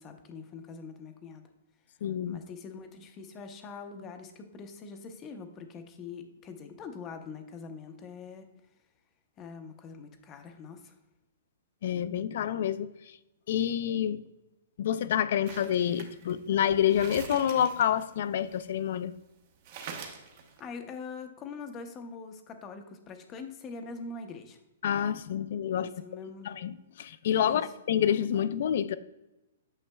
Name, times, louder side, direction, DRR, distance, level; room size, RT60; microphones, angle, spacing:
voice 1, 0.0-1.4 2.3-8.5 9.4-10.9 20.6-24.6 25.8-26.5 27.5-27.7, left 4 dB, 20° left, 0.7 m, -43 dB
voice 2, 2.0-2.4 11.8-12.9 13.5-14.2 14.8-19.1 24.8-25.9 26.4-29.0, left 9 dB, 55° left, 0.4 m, -28 dB
sound 1, 15.5-19.0 19.3-19.4 19.6-20.6, right 6 dB, 40° right, 1.0 m, -45 dB
8.8 x 6.2 x 2.3 m
hypercardioid pair, 155°, 0 cm